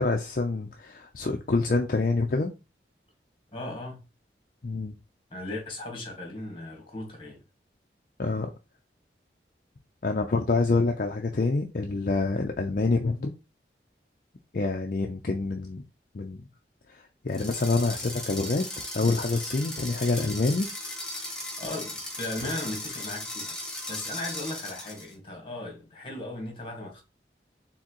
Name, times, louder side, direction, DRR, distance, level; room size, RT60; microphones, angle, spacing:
voice 1, 0.0-2.5 4.6-5.0 8.2-8.5 10.0-13.3 14.5-15.8 16.1-16.5 16.9-20.7, left 3 dB, 50° left, 0.5 m, -27 dB
voice 2, 3.5-4.0 5.3-7.4 21.6-27.0, left 2 dB, 30° left, 1.7 m, -37 dB
sound 1, 17.3-25.1, left 1 dB, 5° left, 1.1 m, -37 dB
4.6 x 3.7 x 3.0 m
head